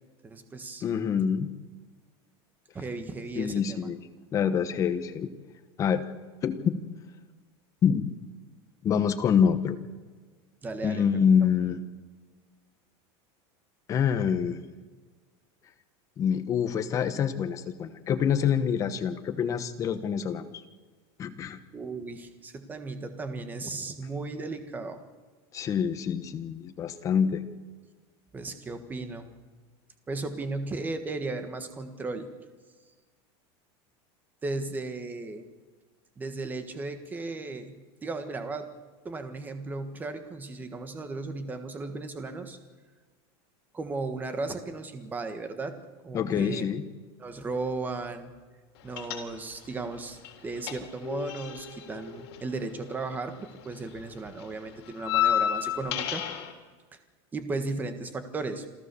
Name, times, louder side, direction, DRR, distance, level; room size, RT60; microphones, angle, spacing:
voice 1, 0.2-0.8 2.7-3.8 10.6-11.3 21.7-25.0 28.3-29.3 30.1-32.3 34.4-35.4 36.2-37.7 38.0-38.7 39.0-42.6 43.7-45.7 46.0-46.6 47.2-48.3 48.8-56.2 57.3-58.6, right 3 dB, 15° right, 8 dB, 1.5 m, -35 dB
voice 2, 0.8-1.5 3.4-4.1 4.3-5.3 5.8-6.0 6.4-6.8 7.8-8.1 8.8-9.8 10.8-11.8 13.9-14.6 16.2-20.6 21.2-21.6 25.5-27.4 46.1-46.8, left 7 dB, 25° left, 9 dB, 1.1 m, -26 dB
sound 1, 49.0-49.7 50.0-53.4 53.6-56.5, left 10 dB, 80° left, 3.7 m, -31 dB
27.5 x 14.0 x 6.9 m, 1.4 s
supercardioid pair, 170°, 14 cm